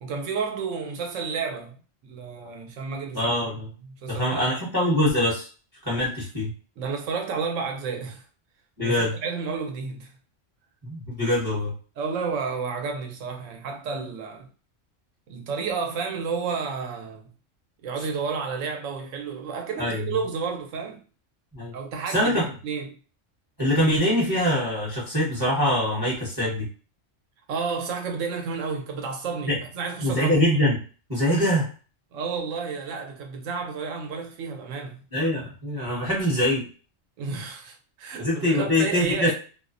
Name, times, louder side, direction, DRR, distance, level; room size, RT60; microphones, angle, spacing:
voice 1, 0.0-1.8 2.0-3.5 3.8-4.6 6.8-8.2 8.8-10.1 12.0-14.5 15.3-17.3 17.8-21.0 21.7-22.9 27.5-30.4 32.1-35.0 37.2-39.3, right 5 dB, 75° right, 1.0 m, -31 dB
voice 2, 3.1-3.7 4.1-5.5 5.8-6.5 8.8-9.1 10.8-11.7 19.8-20.0 21.5-21.7 22.1-22.4 23.6-26.7 29.5-29.6 30.0-30.8 31.1-31.7 35.1-36.6 38.2-39.3, left 1 dB, 20° right, 0.8 m, -23 dB
2.4 x 2.1 x 2.4 m
omnidirectional pair, 1.3 m